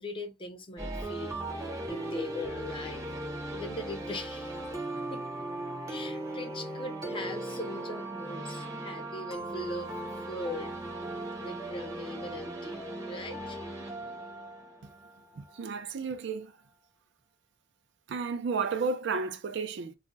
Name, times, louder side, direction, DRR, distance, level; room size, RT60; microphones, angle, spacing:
voice 1, 0.0-3.1 3.5-4.6 5.1-5.2 5.9-10.0 10.3-10.8 11.4-13.9, left 2 dB, 25° left, 0.5 m, -40 dB
sound 1, 0.8-15.6, right 1 dB, 15° right, 0.6 m, -38 dB
voice 2, 15.4-16.5 18.1-19.9, right 5 dB, 60° right, 0.4 m, -32 dB
2.3 x 2.1 x 3.8 m
head